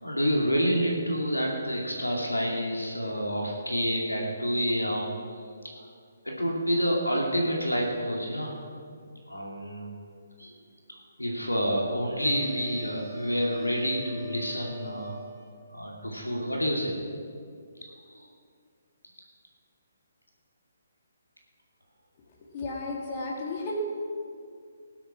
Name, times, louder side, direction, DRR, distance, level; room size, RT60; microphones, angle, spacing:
voice 1, 0.0-5.1 6.2-8.6 9.3-9.9 10.4-10.6 11.2-15.3 15.7-17.0 18.1-18.3, equal, 85° left, 0 dB, 2.5 m, -28 dB
sound 1, 12.2-15.7, right 1 dB, 5° right, 2.0 m, -43 dB
voice 2, 22.2-23.8, left 3 dB, 35° left, -2 dB, 2.5 m, -34 dB
19.0 x 7.9 x 6.1 m, 2.3 s
figure-of-eight pair, 135°, 0 cm